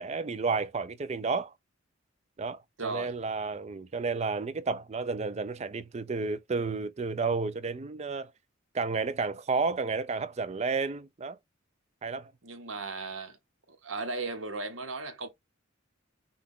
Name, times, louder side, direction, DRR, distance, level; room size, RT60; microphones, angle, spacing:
voice 1, 0.0-1.5 2.4-8.3 8.7-11.4 12.0-12.3, right 4 dB, 35° right, 0.4 m, -31 dB
voice 2, 2.8-3.1 12.4-13.4 13.7-15.3, right 3 dB, 75° right, 1.1 m, -36 dB
5.7 x 2.3 x 3.6 m
head